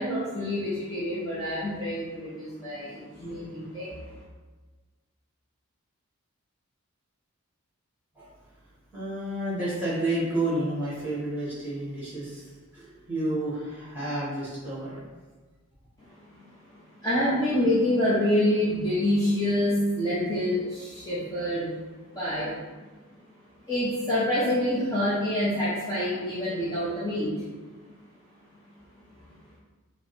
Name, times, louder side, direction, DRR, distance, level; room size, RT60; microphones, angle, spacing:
voice 1, 0.0-4.0 16.4-16.5 17.0-21.7 22.1-22.5 23.7-27.3, left 1 dB, 15° left, -10 dB, 0.6 m, -26 dB
voice 2, 8.9-15.0, right 1 dB, 10° right, -9 dB, 1.4 m, -30 dB
5.2 x 2.1 x 3.1 m, 1.3 s
head